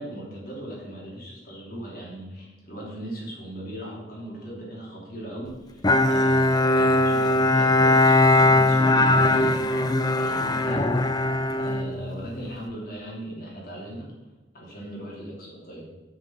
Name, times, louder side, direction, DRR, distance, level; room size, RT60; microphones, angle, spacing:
voice 1, 0.0-9.7 10.1-11.0 11.6-14.1 14.5-15.9, right 1 dB, 55° left, -4 dB, 3.2 m, -38 dB
Bowed string instrument, 5.8-12.5, left 2 dB, 25° left, 0.5 m, -20 dB
6.7 x 6.6 x 5.9 m, 1.2 s
head